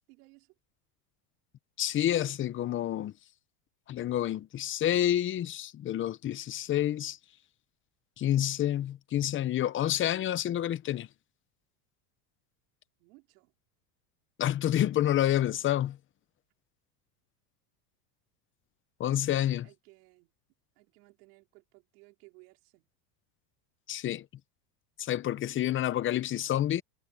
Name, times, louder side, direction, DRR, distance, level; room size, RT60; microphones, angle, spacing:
voice 1, 0.1-0.5 13.0-13.5 19.0-20.3 20.7-22.9, right 26 dB, 75° right, 4.9 m, -59 dB
voice 2, 1.8-3.1 3.9-7.2 8.2-11.1 14.4-16.0 19.0-19.7 23.9-24.2 25.0-26.8, left 12 dB, 25° left, 0.7 m, -28 dB
supercardioid pair, 130°, 47 cm